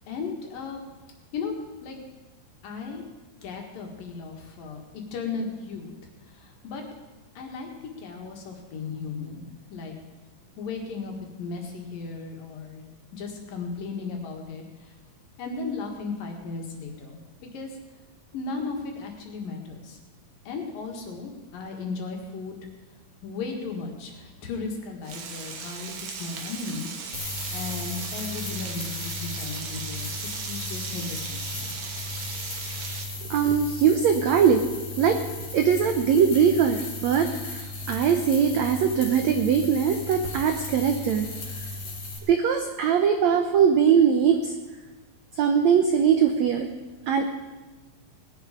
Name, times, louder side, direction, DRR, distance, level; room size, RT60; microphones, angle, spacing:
voice 1, 0.1-0.8 1.3-1.5 1.8-2.0 2.6-3.0 3.4-4.8 5.1-5.9 6.3-6.8 7.4-10.0 10.6-12.8 13.1-14.9 15.4-17.8 18.3-20.0 20.5-22.6 23.2-26.9 27.5-31.7 41.3-41.4, left 4 dB, 70° left, 2 dB, 3.5 m, -35 dB
Frying (food), 25.0-33.0, right 5 dB, 65° right, 2.8 m, -37 dB
sound 1, 27.1-42.2, left 2 dB, 50° left, 4.0 m, -36 dB
voice 2, 33.3-34.6 35.0-35.2 35.5-41.3 42.3-44.5 45.4-46.7 47.1-47.3, right 7 dB, 85° right, 6 dB, 1.5 m, -21 dB
19.0 x 10.5 x 5.1 m, 1.2 s
omnidirectional pair, 4.3 m